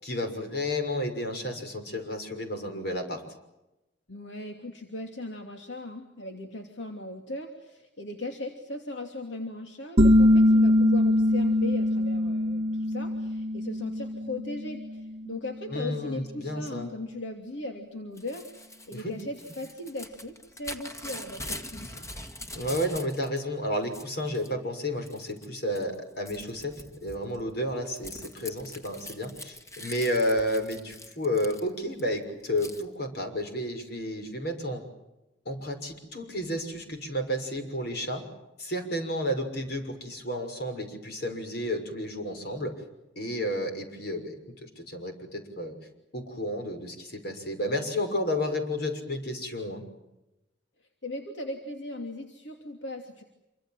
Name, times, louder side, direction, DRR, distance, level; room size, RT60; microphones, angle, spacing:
voice 1, 0.0-3.2 15.7-16.9 18.9-19.1 22.5-34.8 35.4-38.2 38.6-42.8 43.2-45.7 46.1-49.8, left 1 dB, 60° left, 6 dB, 6.3 m, -31 dB
voice 2, 4.1-22.1 51.0-53.2, left 2 dB, 85° left, 3 dB, 2.9 m, -38 dB
sound 1, 10.0-15.4, left 1 dB, 35° right, 1.0 m, -23 dB
Crumpling crinkling / Tearing, 18.2-23.4 23.7-24.5 25.1-25.5 25.8-32.0 32.6-32.8, left 1 dB, 15° left, 1.9 m, -43 dB
27.5 x 25.0 x 7.6 m, 0.94 s
head